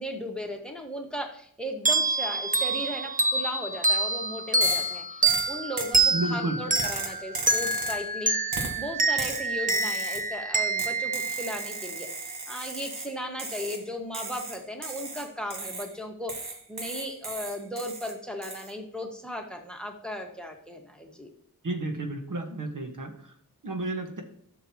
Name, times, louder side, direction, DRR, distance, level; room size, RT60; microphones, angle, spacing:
voice 1, 0.0-21.3, equal, 5° left, 2 dB, 1.6 m, -36 dB
sound 1, 1.9-12.1, right 3 dB, 20° right, 0.9 m, -27 dB
sound 2, 4.6-4.9 5.3-6.0 6.7-8.1 8.5-8.8 9.2-10.3 10.8-13.1 13.4-13.8 14.1-15.9 16.3-18.1 18.4-18.7, right 3 dB, 85° right, 1.5 m, -36 dB
voice 2, 6.1-6.6 21.6-23.1 23.6-24.2, right 2 dB, 60° right, 3 dB, 1.5 m, -31 dB
11.0 x 6.6 x 3.0 m, 0.64 s
wide cardioid pair, 60°, 36 cm